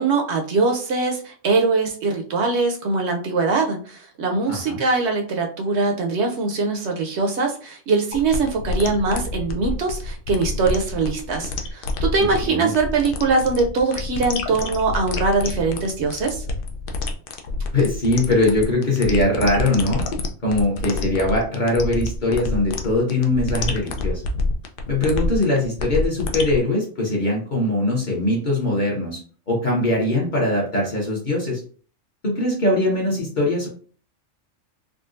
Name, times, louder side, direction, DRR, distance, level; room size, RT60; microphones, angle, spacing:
voice 1, 0.0-16.4, right 3 dB, 70° right, 3 dB, 0.8 m, -22 dB
voice 2, 4.5-4.8 12.2-12.7 17.7-20.0 20.4-24.2 24.9-29.2 29.5-31.6 32.2-33.7, left 2 dB, 40° left, -3 dB, 0.9 m, -21 dB
sound 1, 8.1-26.6, left 3 dB, 60° left, 0.6 m, -28 dB
3.7 x 2.2 x 2.5 m, 0.42 s
omnidirectional pair, 1.3 m